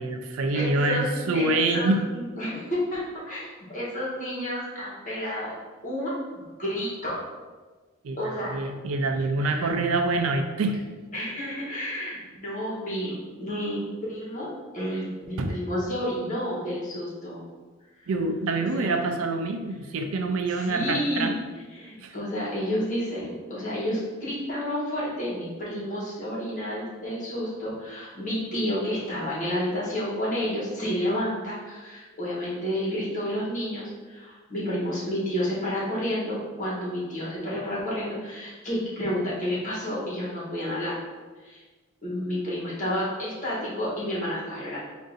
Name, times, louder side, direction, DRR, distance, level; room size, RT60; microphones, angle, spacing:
voice 1, 0.0-2.0 8.0-10.8 15.4-15.6 18.1-21.3 22.0-22.1, right 2 dB, 75° right, 5 dB, 0.4 m, -26 dB
voice 2, 0.5-5.5 5.8-7.2 8.2-8.5 9.4-9.7 11.1-17.4 18.0-18.1 18.6-19.0 20.5-21.3 21.7-41.0 41.4-41.6 42.0-44.8, equal, 35° left, -7 dB, 1.4 m, -30 dB
3.8 x 2.6 x 3.9 m, 1.3 s
head